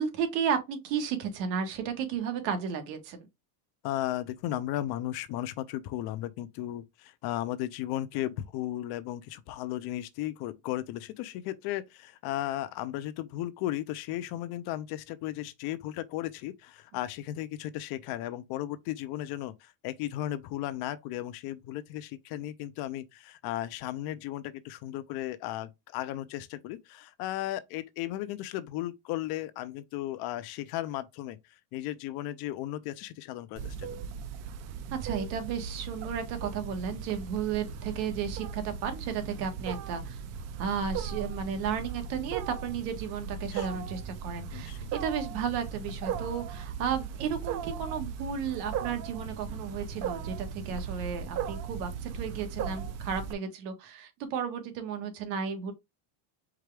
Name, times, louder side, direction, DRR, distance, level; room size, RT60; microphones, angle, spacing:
voice 1, 0.0-3.3 34.9-40.2 40.6-55.7, right 7 dB, 85° right, 1.5 m, -33 dB
voice 2, 3.8-31.4 31.7-34.0 43.5-43.9 44.5-44.9, left 14 dB, 55° left, 0.5 m, -35 dB
Wild animals, 33.6-53.3, right 7 dB, 35° right, 0.4 m, -37 dB
4.8 x 3.3 x 3.3 m
cardioid pair, 165°, 47 cm